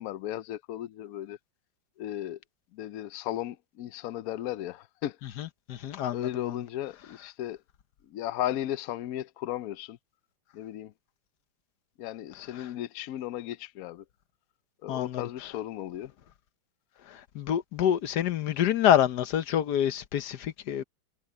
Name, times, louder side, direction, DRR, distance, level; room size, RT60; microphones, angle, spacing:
voice 1, 0.0-1.4 2.0-2.4 2.7-5.2 6.1-7.6 8.1-10.0 10.5-10.9 12.0-14.0 14.8-16.1, left 12 dB, 80° left, 0.8 m, -35 dB
voice 2, 5.4-6.6 12.6-12.7 14.9-15.2 17.1-20.8, left 10 dB, 60° left, 1.3 m, -27 dB
omnidirectional pair, 2.2 m